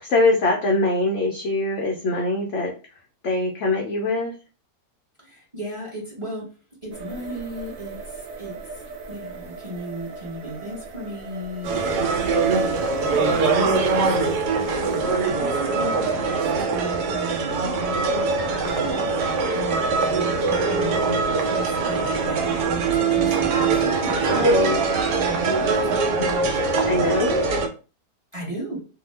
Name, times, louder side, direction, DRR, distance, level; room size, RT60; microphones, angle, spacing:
voice 1, 0.0-2.7 3.2-4.3 24.3-24.8 26.7-27.4, left 2 dB, 70° left, 0 dB, 0.7 m, -23 dB
voice 2, 5.2-6.5 6.8-8.6 9.1-14.3 14.7-18.3 18.6-24.7 25.1-26.5 28.3-28.9, equal, 25° right, -4 dB, 0.8 m, -36 dB
sound 1, 6.9-15.3, right 5 dB, 65° right, 0.8 m, -40 dB
sound 2, 11.6-27.7, right 4 dB, 80° right, 1.2 m, -22 dB
2.7 x 2.1 x 3.1 m, 0.34 s
omnidirectional pair, 1.8 m